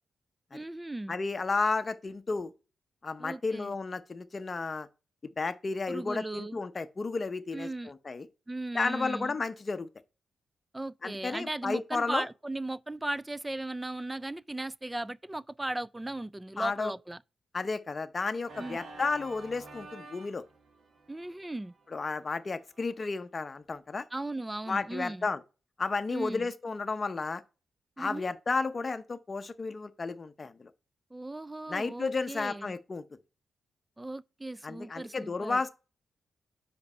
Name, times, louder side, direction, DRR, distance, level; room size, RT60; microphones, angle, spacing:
voice 1, 0.5-1.2 3.2-3.7 5.9-6.6 7.5-7.9 8.5-9.4 10.7-17.2 18.6-18.8 21.1-21.7 24.1-25.3 26.1-26.5 28.0-28.3 31.1-32.7 34.0-35.6, right 2 dB, 15° right, 0.3 m, -37 dB
voice 2, 1.1-2.5 3.0-4.9 5.4-8.3 8.7-9.9 11.0-12.2 16.6-16.9 17.5-20.4 21.9-24.0 24.7-25.4 25.8-27.4 28.0-30.7 31.7-33.0 34.6-35.7, left 4 dB, 30° left, 0.7 m, -32 dB
Organ, 18.4-23.3, right 2 dB, 65° right, 1.6 m, -51 dB
5.2 x 5.2 x 5.4 m
cardioid pair, 115°, 0 cm